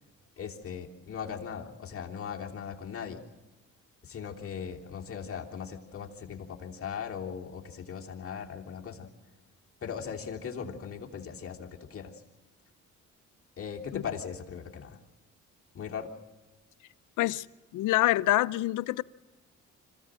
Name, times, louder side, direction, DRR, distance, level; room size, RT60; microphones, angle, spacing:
voice 1, 0.4-3.2 4.0-9.1 9.8-12.2 13.6-15.0 15.7-16.1, left 7 dB, 45° left, 3.1 m, -39 dB
voice 2, 17.7-19.0, left 16 dB, 85° left, 0.7 m, -26 dB
26.0 x 16.0 x 7.6 m
cardioid pair, 90°, 30 cm